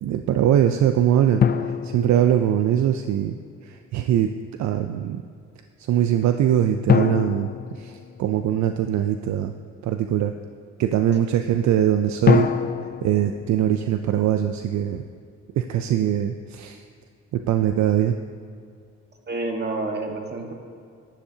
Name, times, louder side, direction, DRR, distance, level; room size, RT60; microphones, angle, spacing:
voice 1, 0.0-3.4 3.6-4.3 4.6-5.2 5.9-9.5 9.8-10.3 10.8-12.5 13.0-15.0 15.6-16.8 17.3-18.1, right 10 dB, 65° right, 7 dB, 0.5 m, -22 dB
sound 1, 1.4-3.0 6.9-8.8 12.3-14.5, left 8 dB, 35° left, 0.4 m, -25 dB
voice 2, 19.3-20.5, right 2 dB, 35° right, 2 dB, 1.4 m, -28 dB
11.5 x 10.0 x 2.8 m, 2.2 s
cardioid pair, 90°, 30 cm